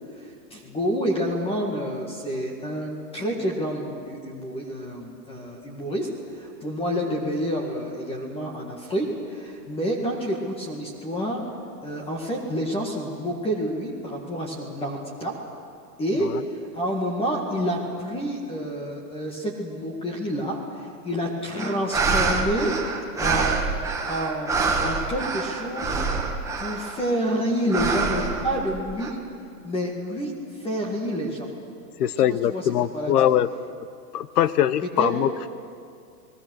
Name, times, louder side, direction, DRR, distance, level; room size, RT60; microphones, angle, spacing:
voice 1, 0.2-6.1 6.4-11.4 11.8-15.3 16.0-16.3 16.7-22.8 23.2-23.7 24.1-26.0 26.6-29.2 29.6-31.5 32.3-32.6 32.9-33.3 35.0-35.1, equal, 10° left, 0 dB, 1.9 m, -28 dB
sound 1, 21.6-27.1 27.7-29.1, right 4 dB, 5° right, 1.2 m, -26 dB
voice 2, 32.0-33.5 34.1-35.5, left 11 dB, 65° left, 16 dB, 1.0 m, -22 dB
29.0 x 19.5 x 6.4 m, 2.4 s
supercardioid pair, 160°, 49 cm